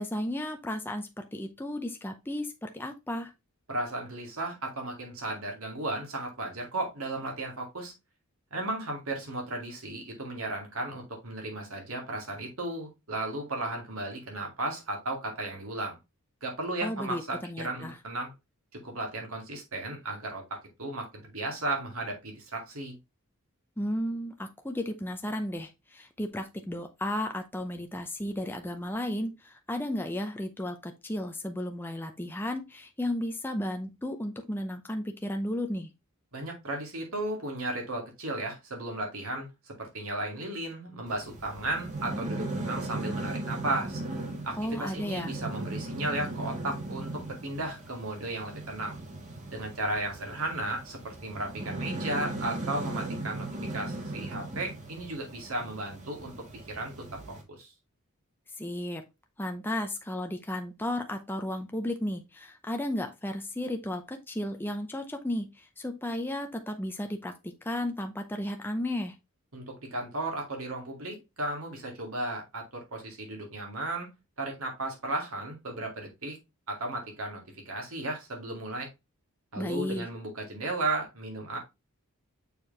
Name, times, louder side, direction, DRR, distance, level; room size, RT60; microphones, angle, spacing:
voice 1, 0.0-3.3 16.8-18.0 23.8-35.9 44.6-45.3 58.6-59.0 59.4-67.3 67.6-69.1 79.6-80.1, left 1 dB, 10° left, 4 dB, 0.6 m, -34 dB
voice 2, 3.7-7.9 8.5-16.0 16.4-18.3 18.8-23.0 36.3-44.0 44.4-49.0 49.5-56.3 56.7-56.9 57.5-57.7 69.5-74.1 74.4-76.4 76.7-78.9 79.5-81.6, right 2 dB, 70° right, 1 dB, 2.3 m, -35 dB
sound 1, 41.1-57.4, right 2 dB, 35° right, 1.7 m, -38 dB
6.7 x 4.6 x 3.2 m, 0.23 s
head